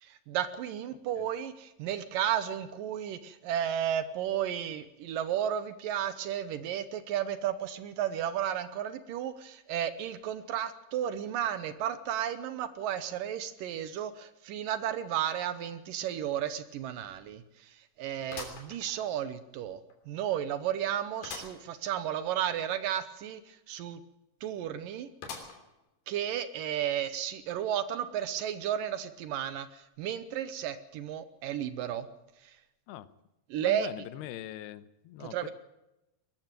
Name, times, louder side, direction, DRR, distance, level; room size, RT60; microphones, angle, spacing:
voice 1, 0.0-19.8 20.1-24.0 24.4-25.1 26.1-32.1 32.4-32.6 33.5-33.9 35.2-35.5, right 10 dB, 75° right, 14 dB, 2.3 m, -33 dB
sound 1, 16.1-16.2 16.6-16.7 18.3-19.4 19.9-20.0 21.2-21.6 22.1-22.2 22.4-22.5 25.2-25.8 26.4-26.5 27.5-27.6, left 5 dB, 70° left, 5.0 m, -43 dB
voice 2, 33.6-35.5, left 13 dB, 85° left, 16 dB, 2.9 m, -42 dB
21.5 x 13.5 x 9.1 m, 0.95 s
omnidirectional pair, 4.5 m